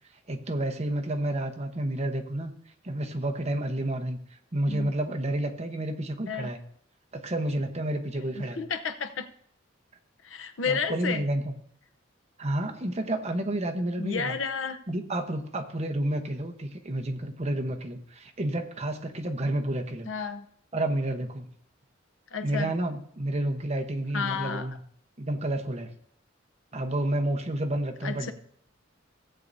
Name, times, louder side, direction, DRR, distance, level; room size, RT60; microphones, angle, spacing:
voice 1, 0.3-2.5 2.8-4.2 4.5-6.6 7.1-8.6 10.6-11.5 12.4-14.4 14.9-20.1 20.7-21.5 22.4-24.7 25.2-25.9 26.7-28.3, right 1 dB, 35° right, 4 dB, 1.0 m, -30 dB
voice 2, 8.6-9.3 10.2-11.2 14.0-14.8 20.1-20.5 22.3-22.7 24.1-24.7 28.0-28.3, left 5 dB, 85° left, 8 dB, 0.8 m, -31 dB
17.0 x 8.1 x 2.7 m, 0.66 s
head